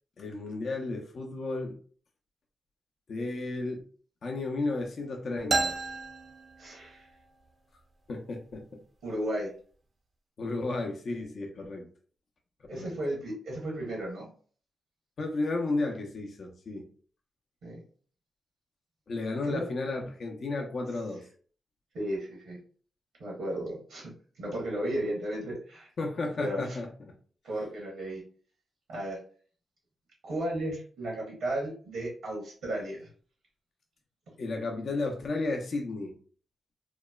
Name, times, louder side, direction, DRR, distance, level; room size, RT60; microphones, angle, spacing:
voice 1, 0.2-1.8 3.1-3.8 4.2-5.7 8.1-8.8 10.4-11.9 12.7-12.9 15.2-16.9 19.1-21.2 26.0-27.1 34.4-36.1, left 2 dB, 60° left, 0.5 m, -33 dB
sound 1, 5.5-7.2, right 3 dB, 45° right, 0.5 m, -32 dB
voice 2, 6.6-7.1 9.0-9.5 12.7-14.3 17.6-17.8 19.4-19.6 21.9-22.6 23.2-24.1 24.4-25.9 26.4-26.8 27.4-28.2 28.9-29.2 30.2-33.0, right 1 dB, 85° right, 1.0 m, -34 dB
2.9 x 2.1 x 2.3 m
supercardioid pair, 50°, 0 cm